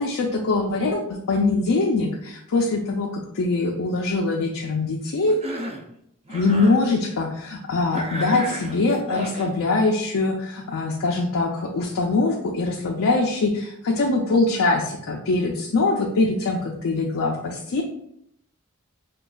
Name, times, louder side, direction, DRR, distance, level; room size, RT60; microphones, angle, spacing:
voice 1, 0.0-5.4 6.3-17.8, left 3 dB, 65° left, 0 dB, 0.4 m, -23 dB
Cough, 5.3-5.9 6.3-6.8 7.9-9.5, right 1 dB, 30° right, 0.4 m, -33 dB
5.1 x 2.3 x 2.3 m, 0.72 s
head